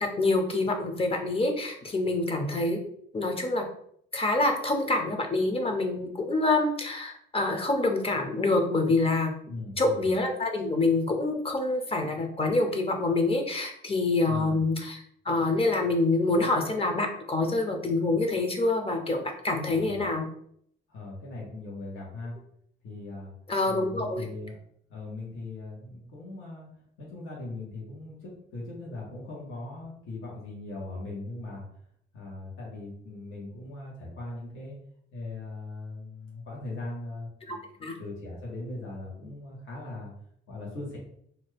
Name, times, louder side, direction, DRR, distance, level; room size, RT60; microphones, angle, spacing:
voice 1, 0.0-2.8 3.1-3.6 4.1-9.3 9.8-20.3 23.5-24.3 37.5-37.9, left 2 dB, 30° left, 4 dB, 0.6 m, -26 dB
voice 2, 9.5-10.0 14.3-14.6 19.7-20.0 20.9-22.3 22.8-23.3 23.7-24.6 24.9-26.7 27.0-31.6 32.1-34.8 35.1-37.6 38.0-40.1 40.5-41.0, left 2 dB, 80° left, -4 dB, 1.3 m, -39 dB
2.7 x 2.4 x 3.3 m, 0.68 s
cardioid pair, 90°, 20 cm